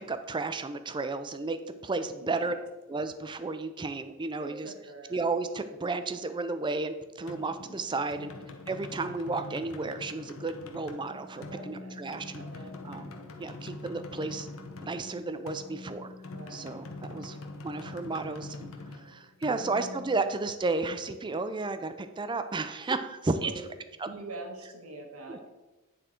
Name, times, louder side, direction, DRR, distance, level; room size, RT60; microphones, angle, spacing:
voice 1, 0.0-2.5 2.9-4.7 5.1-8.3 8.7-12.4 12.8-13.1 13.4-14.5 14.8-16.1 16.5-17.4 17.6-18.7 18.9-23.5 24.0-24.1 25.3-25.4, right 3 dB, 20° right, 10 dB, 0.4 m, -33 dB
voice 2, 2.2-2.6 4.4-5.3 8.0-8.4 11.3-12.1 12.4-13.1 16.3-17.3 19.5-19.6 23.4-23.6 24.0-25.5, right 2 dB, 85° right, 2 dB, 1.3 m, -44 dB
sound 1, 7.3-20.8, left 2 dB, 70° left, 0.8 m, -44 dB
9.0 x 3.7 x 4.3 m, 1.1 s
head